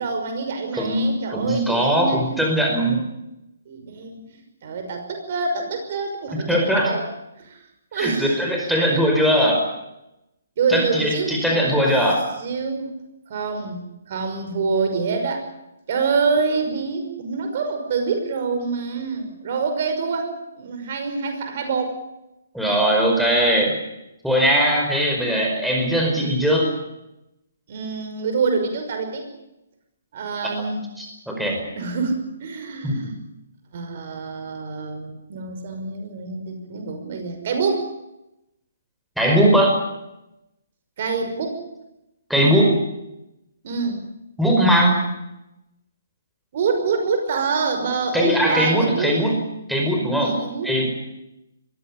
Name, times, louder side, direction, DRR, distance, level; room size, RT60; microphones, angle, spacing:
voice 1, 0.0-2.2 3.7-4.2 4.6-7.0 7.4-7.6 7.9-9.1 10.6-11.8 12.4-13.0 13.3-15.5 15.9-22.0 27.7-29.3 30.1-30.9 31.8-33.1 33.7-37.9 41.0-41.6 43.6-44.0 46.5-49.1 50.2-50.7, right 4 dB, 50° right, 6 dB, 5.7 m, -26 dB
voice 2, 0.7-3.1 6.5-6.9 7.9-9.6 10.7-12.3 22.5-23.7 24.2-26.7 31.0-31.6 32.8-33.1 39.2-39.8 42.3-42.8 44.4-45.0 48.1-49.4 49.7-50.9, equal, ahead, 0 dB, 5.0 m, -20 dB
22.5 x 16.0 x 9.9 m, 0.91 s
figure-of-eight pair, 135°, 0 cm